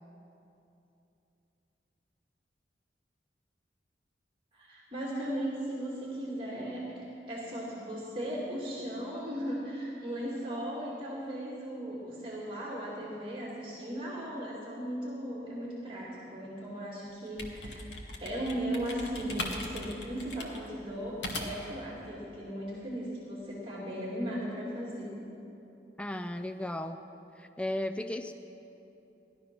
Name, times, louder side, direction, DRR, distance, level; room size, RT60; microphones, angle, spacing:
voice 1, 4.5-17.8 18.2-25.1, equal, 30° right, -5 dB, 2.1 m, -37 dB
sound 1, 17.1-21.8, left 1 dB, 75° left, 1.6 m, -39 dB
voice 2, 26.0-27.0 27.4-28.3, left 1 dB, 5° left, 8 dB, 0.4 m, -35 dB
16.5 x 12.0 x 5.9 m, 2.9 s
head